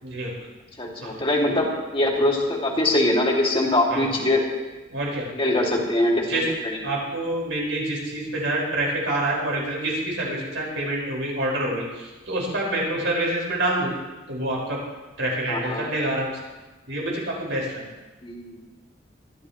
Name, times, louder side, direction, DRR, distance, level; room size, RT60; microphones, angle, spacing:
voice 1, 0.8-1.7 1.9-4.4 5.3-6.8 15.5-15.9 18.2-18.6, left 1 dB, 30° left, -1 dB, 2.3 m, -23 dB
voice 2, 4.9-5.3 6.3-6.4 6.8-11.8 12.3-13.9 14.3-14.8 15.2-16.3 16.9-17.6, right 1 dB, 85° right, -3 dB, 5.0 m, -26 dB
24.5 x 11.0 x 3.1 m, 1.2 s
head